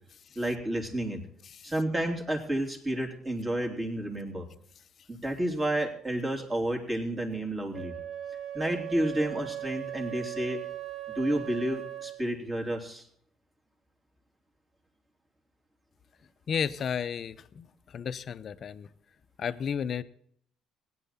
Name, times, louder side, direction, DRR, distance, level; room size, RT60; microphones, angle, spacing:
voice 1, 0.3-1.2 1.6-4.5 5.1-7.9 8.5-10.6 11.1-13.1, right 1 dB, 25° right, 3.3 m, -30 dB
Wind instrument woodwind instrument, 7.7-12.2, right 12 dB, 50° right, 1.4 m, -38 dB
voice 2, 16.5-18.9 19.4-20.0, left 7 dB, 50° left, 0.7 m, -33 dB
16.5 x 10.5 x 4.2 m
supercardioid pair, 65°, 0 cm